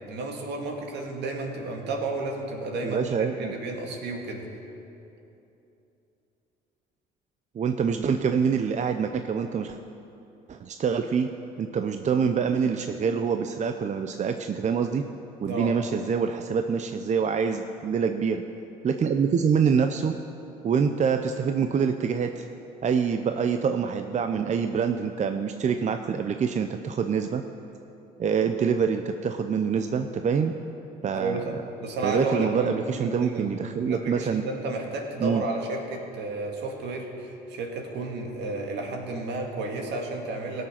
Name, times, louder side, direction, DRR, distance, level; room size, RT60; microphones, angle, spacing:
voice 1, 0.1-4.5 15.4-15.7 31.1-31.5 31.8-40.7, right 2 dB, 65° right, 2 dB, 2.0 m, -32 dB
voice 2, 2.8-3.5 7.5-9.8 10.5-11.3 11.6-15.0 15.4-18.4 18.8-20.1 20.6-22.5 22.8-27.4 28.2-30.5 31.0-31.4 32.0-34.4 35.2-35.5, right 6 dB, 40° right, 7 dB, 0.6 m, -25 dB
17.5 x 6.5 x 5.8 m, 2.9 s
supercardioid pair, 65°, 19 cm